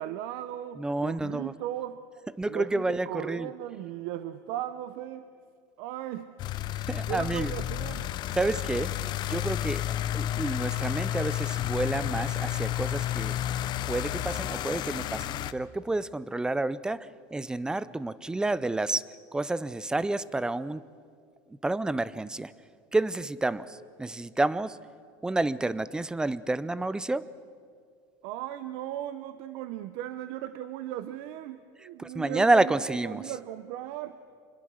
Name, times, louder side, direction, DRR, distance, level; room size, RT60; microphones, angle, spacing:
voice 1, 0.0-2.0 2.5-5.2 5.8-6.4 7.1-8.1 28.2-34.2, right 12 dB, 65° right, 12 dB, 0.8 m, -37 dB
voice 2, 0.8-1.5 2.4-3.5 6.8-7.5 8.3-8.9 9.2-13.4 13.9-19.0 19.3-20.8 21.5-22.5 22.9-24.8 25.2-27.3 32.0-33.3, right 2 dB, 5° right, 17 dB, 0.5 m, -29 dB
sound 1, 6.4-15.5, left 12 dB, 40° left, 0.7 m, -31 dB
26.5 x 21.5 x 6.4 m, 2.2 s
cardioid pair, 150°, 12 cm